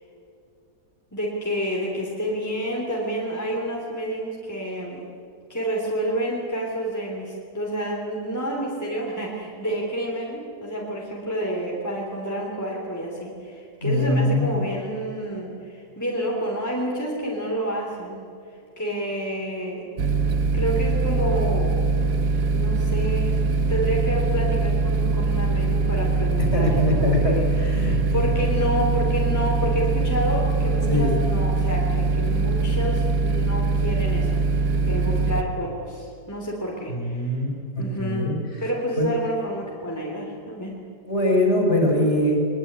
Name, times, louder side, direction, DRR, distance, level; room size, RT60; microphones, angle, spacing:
voice 1, 1.1-5.0 5.5-18.3 18.8-19.8 20.5-21.8 22.5-27.4 27.7-37.4 37.8-38.3 38.6-40.8, equal, 10° left, -2 dB, 3.4 m, -29 dB
voice 2, 13.8-14.5 26.4-28.2 30.9-31.1 36.9-37.5 37.7-38.4 39.0-39.1 41.1-42.4, left 1 dB, 40° left, 0 dB, 5.8 m, -22 dB
sound 1, 20.0-35.4, right 3 dB, 60° right, 1.4 m, -22 dB
22.5 x 21.5 x 9.8 m, 2.4 s
omnidirectional pair, 1.8 m